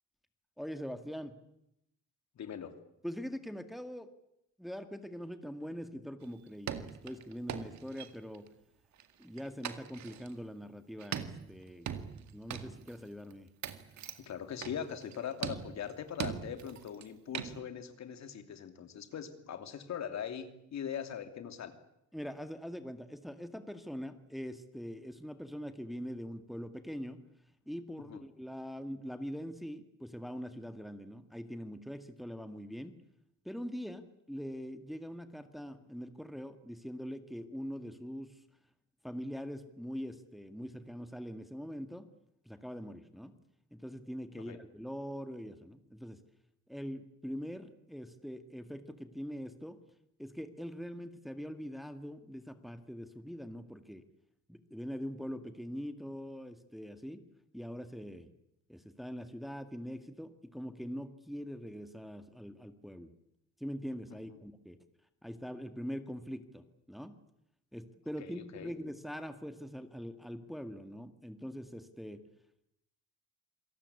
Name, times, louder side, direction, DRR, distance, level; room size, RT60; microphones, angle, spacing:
voice 1, 0.6-1.4 3.0-4.1 4.6-8.5 9.2-11.9 12.3-13.5 22.1-27.2 27.7-33.0 33.5-38.4 39.0-42.1 42.4-43.4 43.7-46.2 46.7-49.8 50.2-54.0 54.5-57.2 57.5-58.3 58.7-63.1 63.6-64.8 65.2-67.1 67.7-72.2, equal, ahead, 8 dB, 2.0 m, -43 dB
voice 2, 2.3-2.7 14.2-21.8 28.1-28.2 44.3-44.6 68.2-68.7, left 8 dB, 65° left, 8 dB, 2.9 m, -41 dB
sound 1, 6.2-6.3 6.7-8.5 9.0-10.3 11.0-13.0 13.3-13.4 13.6-14.3 14.6-15.2 15.4-17.0 17.3-17.6, right 9 dB, 65° right, 2.0 m, -41 dB
27.0 x 18.5 x 8.5 m, 0.80 s
cardioid pair, 90°, 30 cm